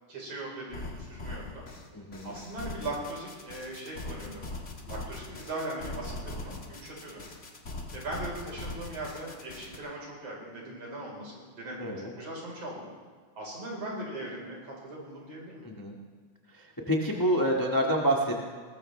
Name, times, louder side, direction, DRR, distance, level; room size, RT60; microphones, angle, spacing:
voice 1, 0.1-1.7 2.2-4.4 4.9-7.2 7.9-12.9 13.4-15.6, right 1 dB, 50° right, -3 dB, 5.3 m, -39 dB
sound 1, 0.7-9.8, left 2 dB, 40° left, 1.1 m, -41 dB
voice 2, 1.9-2.3 11.8-12.1 15.6-15.9 16.5-18.5, right 1 dB, 20° left, -1 dB, 0.5 m, -28 dB
20.5 x 20.0 x 3.3 m, 1.5 s
omnidirectional pair, 3.6 m